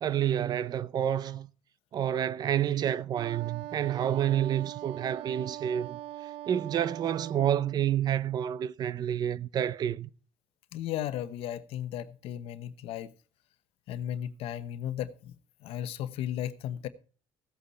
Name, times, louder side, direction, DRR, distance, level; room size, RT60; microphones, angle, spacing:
voice 1, 0.0-1.5 1.9-6.0 6.5-10.1, right 10 dB, 40° right, 0.7 m, -29 dB
Wind instrument woodwind instrument, 3.1-7.8, right 14 dB, 85° right, 0.5 m, -42 dB
voice 2, 10.7-13.1 13.9-15.3 15.6-16.9, left 11 dB, 70° left, 1.0 m, -35 dB
16.0 x 8.5 x 4.3 m
cardioid pair, 150°, 10 cm